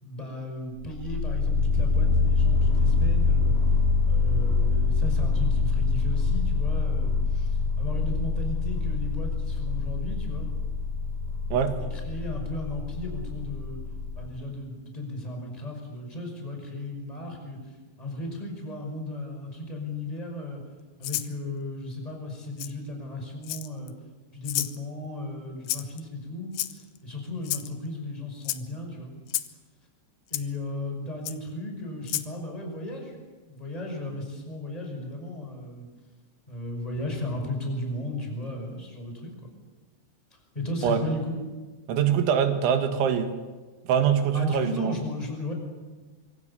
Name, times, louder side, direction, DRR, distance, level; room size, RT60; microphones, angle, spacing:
voice 1, 0.0-3.6 4.0-10.5 11.8-13.8 14.2-17.6 18.0-20.6 21.0-23.9 24.3-29.2 30.3-33.2 33.5-35.9 36.5-39.3 40.5-41.4 44.3-45.5, left 2 dB, 10° left, 2 dB, 5.2 m, -35 dB
sound 1, 0.8-14.3, left 4 dB, 50° left, 3.7 m, -25 dB
Rattle (instrument), 21.0-21.3 22.6-22.7 23.4-23.9 24.4-24.8 25.7-26.0 26.5-27.0 27.4-27.7 28.4-28.6 29.3-29.5 30.3-30.4 31.2-31.4 32.0-32.3, left 14 dB, 75° left, 2.7 m, -30 dB
voice 2, 41.9-43.3 43.9-44.9, right 8 dB, 85° right, 7 dB, 4.1 m, -23 dB
25.5 x 25.0 x 7.1 m, 1.3 s
omnidirectional pair, 5.3 m